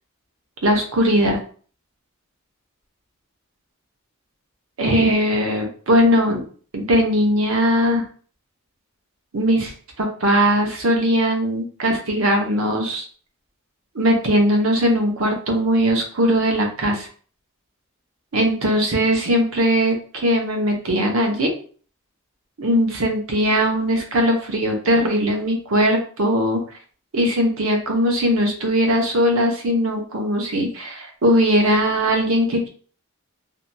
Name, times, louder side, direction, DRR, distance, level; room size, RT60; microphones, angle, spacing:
voice 1, 0.6-1.4 4.8-6.4 6.7-8.0 9.3-9.7 10.0-13.0 13.9-17.1 18.3-21.5 22.6-26.6 27.1-32.7, equal, 75° right, 2 dB, 0.8 m, -19 dB
2.8 x 2.7 x 2.2 m, 0.43 s
head